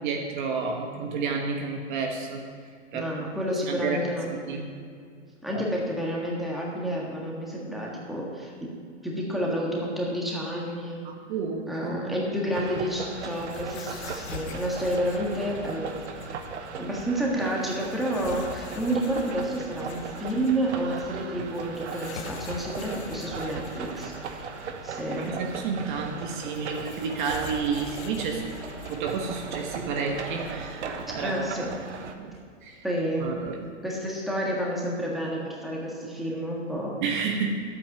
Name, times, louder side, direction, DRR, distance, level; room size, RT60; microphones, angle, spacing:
voice 1, 0.0-2.4 2.9-3.1 3.7-4.1 4.5-4.7 5.5-5.6 11.0-12.2 25.2-28.5 28.9-31.4 32.2-32.4 32.6-32.8 33.2-33.6 37.0-37.6, right 5 dB, 40° right, 2 dB, 1.2 m, -30 dB
voice 2, 2.9-4.3 5.4-8.5 9.0-11.0 11.7-16.0 16.8-24.5 24.8-25.5 31.2-31.7 32.8-33.3 33.8-37.1, equal, ahead, -3 dB, 1.6 m, -30 dB
sound 1, 12.5-32.1, right 5 dB, 65° right, 1.2 m, -38 dB
sound 2, 13.0-31.1, left 7 dB, 65° left, 1.1 m, -45 dB
11.5 x 8.6 x 5.9 m, 2.1 s
hypercardioid pair, 140°, 37 cm